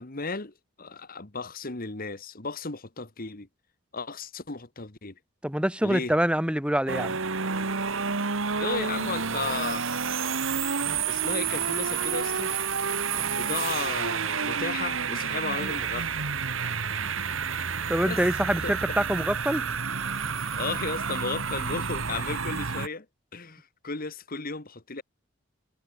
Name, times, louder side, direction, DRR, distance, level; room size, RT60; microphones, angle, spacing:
voice 1, 0.0-3.5 3.9-5.1 5.8-6.1 8.5-9.8 10.6-12.5 13.3-16.3 18.1-18.2 18.6-19.0 20.5-23.1 23.3-25.0, left 4 dB, 45° left, 1.8 m, -35 dB
voice 2, 5.4-7.2 17.9-19.6, equal, 5° right, 1.7 m, -25 dB
sound 1, 6.9-22.9, right 6 dB, 70° right, 1.7 m, -29 dB
head